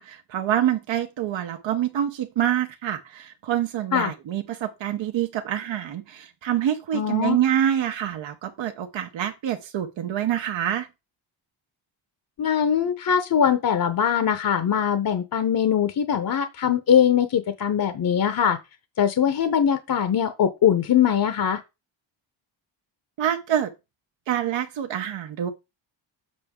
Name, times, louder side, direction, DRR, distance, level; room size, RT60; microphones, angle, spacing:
voice 1, 0.0-10.9 23.2-23.7 24.3-25.5, right 10 dB, 65° right, 1.0 m, -26 dB
voice 2, 6.9-7.4 12.4-18.6 19.0-21.6, left 8 dB, 45° left, 0.8 m, -22 dB
7.4 x 5.5 x 3.6 m
cardioid pair, 100°, 47 cm